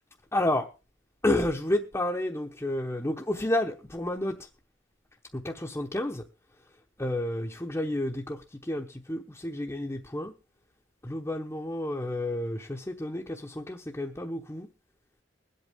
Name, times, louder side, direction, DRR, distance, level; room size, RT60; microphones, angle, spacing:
voice 1, 0.3-0.7 1.2-4.4 5.3-6.2 7.0-10.3 11.0-14.7, left 1 dB, 15° left, 0 dB, 0.9 m, -30 dB
22.0 x 8.3 x 3.6 m, 0.31 s
head